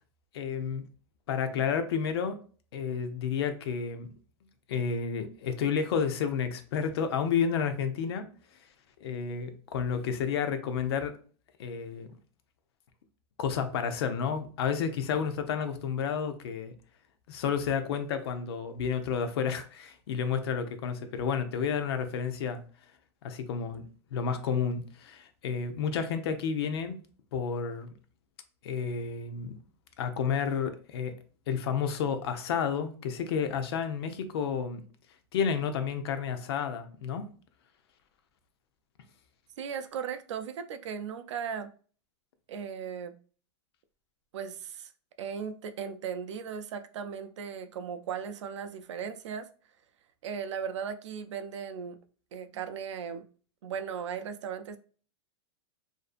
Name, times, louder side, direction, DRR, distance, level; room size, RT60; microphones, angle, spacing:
voice 1, 0.3-0.8 1.3-2.4 2.7-4.1 4.7-8.3 9.0-11.2 11.6-12.1 13.4-16.7 17.3-22.6 23.2-23.8 24.1-27.0 27.3-27.9 28.6-29.6 30.0-31.1 31.5-34.8 35.3-37.3, left 6 dB, 60° left, 0.5 m, -31 dB
voice 2, 39.6-41.7 42.5-43.1 44.3-44.9 45.2-49.5 50.2-52.0 52.3-53.2 53.6-54.8, right 7 dB, 90° right, 0.4 m, -37 dB
2.6 x 2.4 x 2.4 m
supercardioid pair, 160°, 15 cm